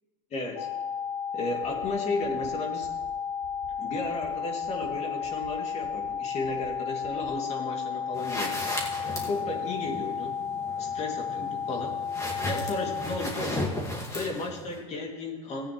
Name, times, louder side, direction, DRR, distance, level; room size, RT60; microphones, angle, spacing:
voice 1, 0.3-0.7 1.3-2.9 3.8-8.6 9.2-10.3 10.8-11.9 12.4-13.7 14.1-15.7, left 2 dB, 40° left, 0 dB, 2.6 m, -34 dB
sound 1, 0.6-13.0, left 7 dB, 90° left, 1.1 m, -33 dB
sound 2, 1.6-1.9 2.2-2.5 2.8-3.1 3.4-3.7 4.0-4.3 4.6-4.9 5.2-5.5 5.8-6.1 6.4-6.7 7.0-7.3, right 8 dB, 75° right, 1.3 m, -51 dB
sound 3, 8.1-14.8, left 1 dB, 20° left, 2.2 m, -36 dB
16.5 x 8.9 x 3.2 m, 1.3 s
supercardioid pair, 100°, 17 cm